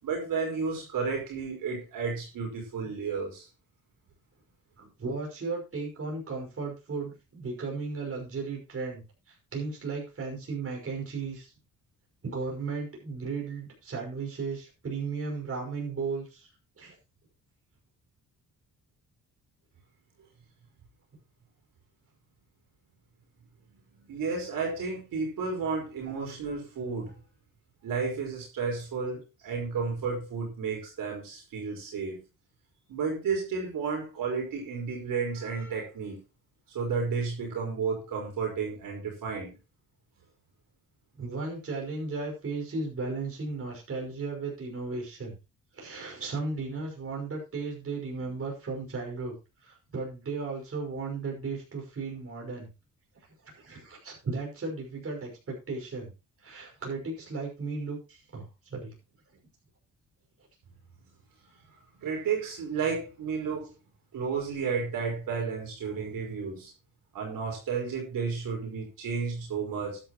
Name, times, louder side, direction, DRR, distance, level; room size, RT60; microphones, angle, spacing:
voice 1, 0.0-3.5 24.0-27.2 27.8-32.2 32.9-36.2 36.7-39.5 62.0-63.7 64.1-66.7 67.1-70.0, right 5 dB, 75° right, 0 dB, 5.2 m, -32 dB
voice 2, 4.8-11.5 12.2-16.5 16.8-17.0 41.2-45.3 45.7-49.3 49.6-52.7 53.4-56.1 56.4-58.9, right 4 dB, 40° right, 0 dB, 5.8 m, -35 dB
12.5 x 11.0 x 3.1 m, 0.28 s
cardioid pair, 100°, 34 cm